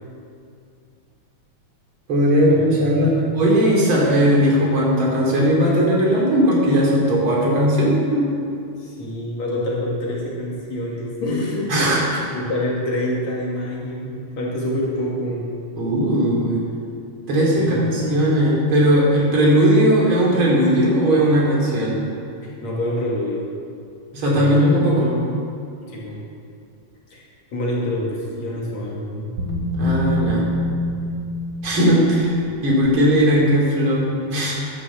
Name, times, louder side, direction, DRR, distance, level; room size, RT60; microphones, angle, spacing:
voice 1, 2.1-8.3 11.7-12.0 15.8-16.6 17.3-22.0 24.1-25.1 29.7-30.5 31.6-32.4 32.6-34.5, equal, 45° right, -4 dB, 3.6 m, -18 dB
voice 2, 2.7-3.5 8.8-11.7 12.3-15.5 17.6-18.2 22.4-23.4 24.3-25.5 25.9-26.2 27.1-27.2 27.5-29.3, left 1 dB, 65° left, -4 dB, 3.5 m, -27 dB
sound 1, 28.1-33.4, left 1 dB, 70° right, 3.1 m, -27 dB
11.0 x 9.8 x 7.5 m, 2.4 s
omnidirectional pair, 3.3 m